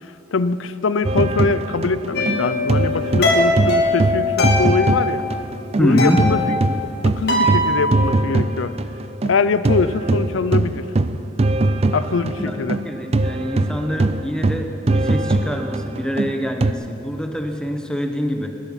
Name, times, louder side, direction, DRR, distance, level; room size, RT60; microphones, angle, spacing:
voice 1, 0.3-5.2 5.8-6.6 7.0-8.8 9.2-10.8 11.9-12.8, left 4 dB, 85° left, 14 dB, 0.6 m, -22 dB
sound 1, 1.0-5.9 6.2-16.7, right 2 dB, 30° right, 0.4 m, -21 dB
sound 2, 2.1-5.4 5.7-8.1, left 1 dB, 55° left, 2.4 m, -21 dB
voice 2, 5.8-6.2 12.4-12.5 12.8-18.5, equal, 5° left, 4 dB, 0.9 m, -24 dB
20.0 x 11.0 x 5.8 m, 3.0 s
head